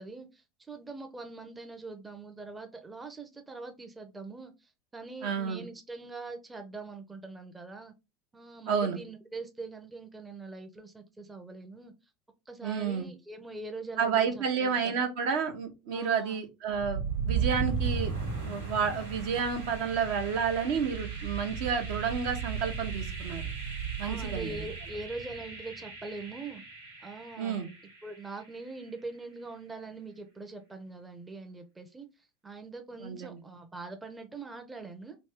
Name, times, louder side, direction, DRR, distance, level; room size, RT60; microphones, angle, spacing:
voice 1, 0.0-7.9 8.3-11.9 12.5-15.1 15.9-16.4 23.7-26.6 27.0-27.6 28.0-35.2, right 3 dB, 15° right, 5 dB, 0.6 m, -43 dB
voice 2, 5.2-5.6 8.7-9.0 12.6-13.1 14.0-23.4 24.0-24.6 27.4-27.7 33.0-33.3, right 6 dB, 60° right, 5 dB, 0.8 m, -30 dB
sound 1, 16.7-28.6, right 6 dB, 80° right, 1.3 m, -36 dB
3.0 x 2.7 x 3.5 m, 0.26 s
figure-of-eight pair, 75°, 0 cm